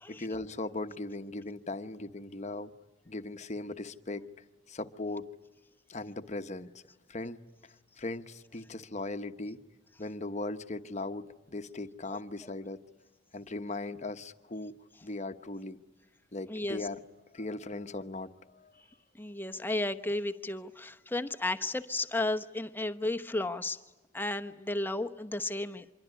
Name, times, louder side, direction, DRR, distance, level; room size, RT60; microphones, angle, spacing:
voice 1, 0.1-2.7 3.1-4.3 4.7-5.3 5.9-6.7 7.1-9.6 10.0-12.8 13.3-14.7 15.0-15.8 16.3-17.0 17.3-18.7, left 2 dB, 40° left, 9 dB, 1.1 m, -38 dB
voice 2, 16.5-16.9 19.2-23.8 24.1-25.8, left 2 dB, 10° left, 8 dB, 1.0 m, -33 dB
26.0 x 23.0 x 9.8 m, 1.1 s
head